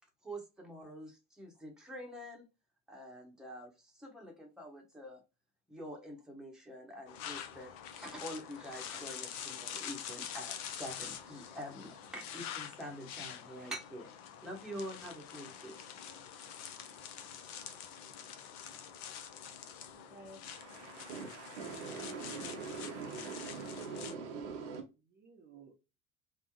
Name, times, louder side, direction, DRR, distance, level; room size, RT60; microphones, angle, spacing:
voice 1, 0.2-2.5 2.9-5.2 5.7-14.1 14.4-15.8, equal, ahead, 1.1 m, -46 dB
sound 1, 7.1-24.1, left 8 dB, 40° left, 0.6 m, -46 dB
voice 2, 19.9-21.2 25.1-25.7, right 2 dB, 20° right, 0.6 m, -57 dB
voice 3, 20.5-24.9, right 5 dB, 55° right, 0.7 m, -43 dB
3.3 x 2.0 x 3.0 m
figure-of-eight pair, 70°, 42 cm